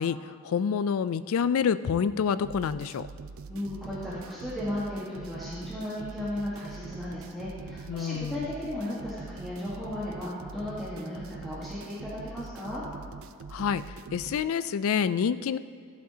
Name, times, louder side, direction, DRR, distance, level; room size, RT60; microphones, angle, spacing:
voice 1, 0.0-3.1 7.9-8.5 13.5-15.6, left 7 dB, 70° left, 14 dB, 0.3 m, -28 dB
sound 1, 2.4-14.4, right 4 dB, 65° right, 0.3 m, -43 dB
voice 2, 3.5-12.8, left 1 dB, ahead, -10 dB, 1.4 m, -35 dB
14.0 x 7.6 x 2.8 m, 2.3 s
head